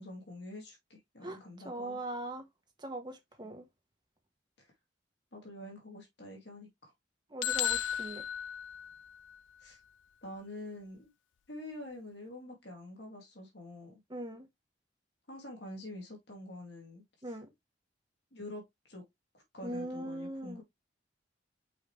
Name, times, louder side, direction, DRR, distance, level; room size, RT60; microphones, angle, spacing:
voice 1, 0.0-2.0 4.6-4.7 5.3-6.9 9.6-9.8 10.2-11.1 11.5-14.0 15.3-17.4 18.3-19.0 19.3-20.6, left 1 dB, 65° left, 2.6 m, -47 dB
voice 2, 1.6-2.5 2.8-3.6 7.3-8.2 14.1-14.5 17.2-17.5 19.6-20.6, right 1 dB, 25° right, 1.4 m, -40 dB
sound 1, 7.4-9.4, left 10 dB, 85° left, 0.4 m, -34 dB
5.8 x 5.1 x 3.2 m
head